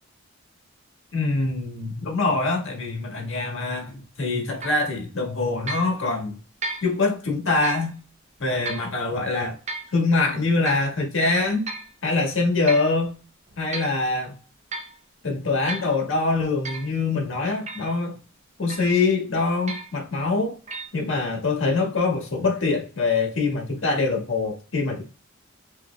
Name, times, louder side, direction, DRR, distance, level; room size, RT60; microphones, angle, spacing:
voice 1, 1.1-6.4 6.8-7.9 8.4-9.6 9.9-11.6 12.0-13.1 13.6-14.4 15.2-18.2 18.6-20.6 20.9-25.0, left 3 dB, 60° left, 1 dB, 1.6 m, -24 dB
sound 1, 4.6-4.9 5.7-5.9 6.6-6.9 7.6-7.9 8.7-8.9 9.7-9.9 10.7-10.9 11.7-11.9 12.7-12.9 13.5-14.0 14.7-15.0 15.7-15.9 16.6-16.9 17.7-17.9 18.7-19.0 19.7-20.0 20.7-20.9, right 2 dB, 30° right, 0.6 m, -34 dB
5.4 x 2.9 x 2.2 m, 0.36 s
head